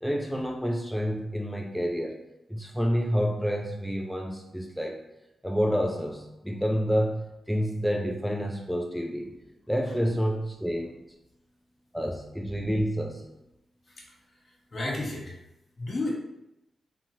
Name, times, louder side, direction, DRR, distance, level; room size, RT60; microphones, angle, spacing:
voice 1, 0.0-2.2 2.5-5.0 5.4-9.3 9.7-11.0 11.9-13.2, equal, ahead, 1 dB, 0.3 m, -28 dB
voice 2, 13.9-15.4 15.8-16.2, left 2 dB, 50° left, -3 dB, 0.9 m, -33 dB
2.7 x 2.6 x 2.7 m, 0.89 s
cardioid pair, 70°, 0 cm